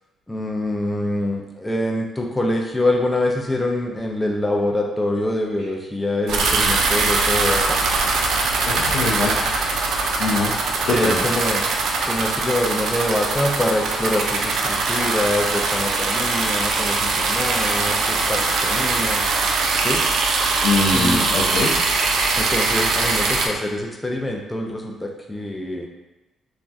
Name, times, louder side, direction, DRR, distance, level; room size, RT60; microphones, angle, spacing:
voice 1, 0.3-7.8 10.9-11.6 12.1-19.2 19.8-20.0 20.9-21.3 22.4-25.9, left 1 dB, 10° left, 0 dB, 0.4 m, -25 dB
sound 1, 6.3-23.5, right 3 dB, 75° right, 0.3 m, -21 dB
voice 2, 8.7-9.7 10.2-10.5 10.8-11.2 20.6-21.7, left 3 dB, 75° left, -5 dB, 0.4 m, -22 dB
3.2 x 2.5 x 2.3 m, 1.0 s
cardioid pair, 90°, 0 cm